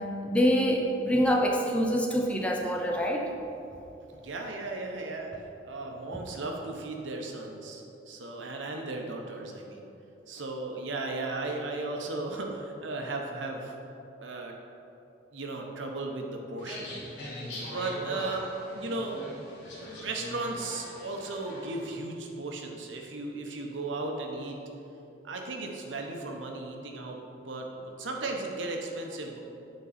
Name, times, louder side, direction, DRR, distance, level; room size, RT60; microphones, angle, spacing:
voice 1, 0.2-3.3, equal, 5° left, 1 dB, 0.4 m, -25 dB
voice 2, 4.2-5.4 5.6-9.9 10.3-13.7 14.2-14.5 15.3-16.9 17.6-19.2 19.9-24.6 25.2-29.4, right 2 dB, 90° right, 2 dB, 0.8 m, -36 dB
sound 1, 16.6-21.9, left 1 dB, 75° left, 1.5 m, -41 dB
8.1 x 4.1 x 4.2 m, 2.8 s
head